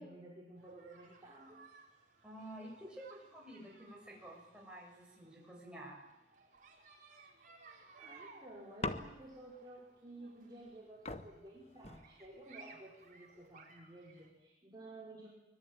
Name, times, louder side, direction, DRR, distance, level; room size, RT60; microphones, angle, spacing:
voice 1, 0.0-1.6 2.8-2.9 8.0-15.4, right 2 dB, 25° right, -4 dB, 5.3 m, -53 dB
sound 1, 0.6-14.3, right 4 dB, 45° right, 4.8 m, -61 dB
voice 2, 2.2-6.0, right 1 dB, 5° right, -2 dB, 7.5 m, -51 dB
sound 2, 8.8-9.6 10.7-10.8 11.1-12.5 13.3-13.7, left 2 dB, 35° left, 1.3 m, -43 dB
24.5 x 22.0 x 9.1 m, 0.97 s
head